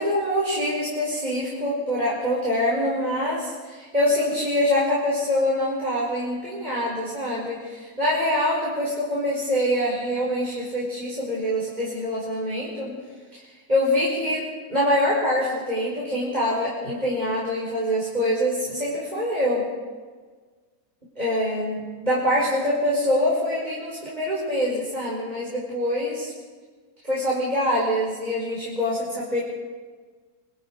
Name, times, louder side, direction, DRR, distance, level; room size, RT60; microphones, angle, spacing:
voice 1, 0.0-12.9 13.3-13.4 13.7-19.6 21.2-26.3 27.0-29.4, left 1 dB, 25° right, -7 dB, 5.6 m, -25 dB
26.0 x 25.5 x 4.9 m, 1.5 s
omnidirectional pair, 1.8 m